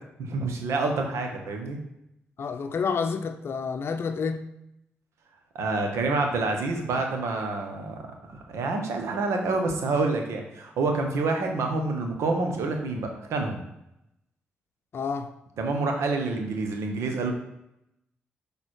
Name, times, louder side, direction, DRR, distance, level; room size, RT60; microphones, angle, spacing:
voice 1, 0.2-1.8 5.5-13.6 15.6-17.3, right 3 dB, 75° right, 1.1 m, -28 dB
voice 2, 2.4-4.5 14.9-15.3, left 5 dB, 55° left, 0.6 m, -29 dB
6.3 x 3.5 x 4.5 m
supercardioid pair, 45°, 5 cm